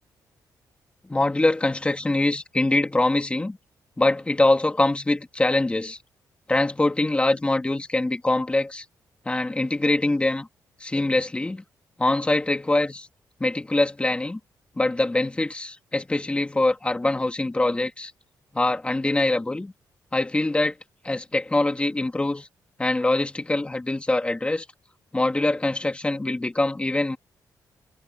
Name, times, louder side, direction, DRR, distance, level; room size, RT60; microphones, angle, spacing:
voice 1, 1.1-3.6 4.0-6.0 6.5-8.8 9.3-10.5 10.8-11.6 12.0-13.1 13.4-14.4 14.8-18.1 18.5-19.7 20.1-20.7 21.0-22.5 22.8-24.6 25.1-27.2, left 2 dB, 15° left, 2.5 m, -23 dB
cardioid pair, 105°, 7 cm